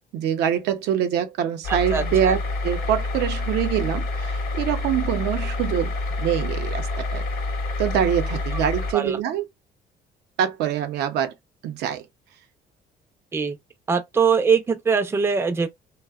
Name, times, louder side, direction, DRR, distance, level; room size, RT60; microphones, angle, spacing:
voice 1, 0.1-2.4 2.6-5.9 6.2-7.2 7.8-9.5 10.4-11.3 11.6-12.0, right 9 dB, 80° right, 0.6 m, -24 dB
sound 1, 1.6-8.9, left 2 dB, 60° left, 0.9 m, -27 dB
voice 2, 1.7-2.4 8.5-8.6 8.9-9.2 13.3-13.6 13.9-15.7, right 6 dB, 15° right, 0.4 m, -22 dB
2.6 x 2.1 x 2.2 m
cardioid pair, 110°, 17 cm